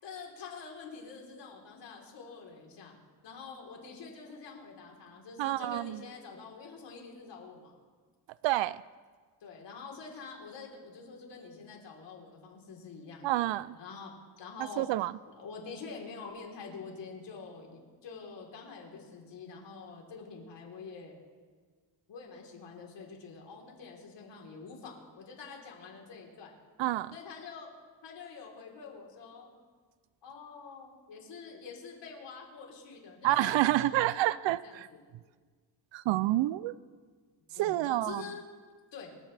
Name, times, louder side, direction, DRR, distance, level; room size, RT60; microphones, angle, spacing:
voice 1, 0.0-2.9 3.2-7.7 9.4-13.4 13.7-14.1 14.4-14.9 15.3-21.2 22.1-26.5 27.1-27.7 28.0-29.5 30.2-34.4 34.6-35.0 37.6-38.4 38.9-39.1, left 5 dB, 75° left, -1 dB, 3.9 m, -46 dB
voice 2, 5.4-6.0 8.4-8.8 13.2-13.7 14.8-15.1 26.8-27.1 33.2-34.9 35.9-36.7 37.6-38.2, right 15 dB, 85° right, 17 dB, 0.5 m, -28 dB
26.5 x 15.0 x 3.4 m, 1.5 s
cardioid pair, 140°, 43 cm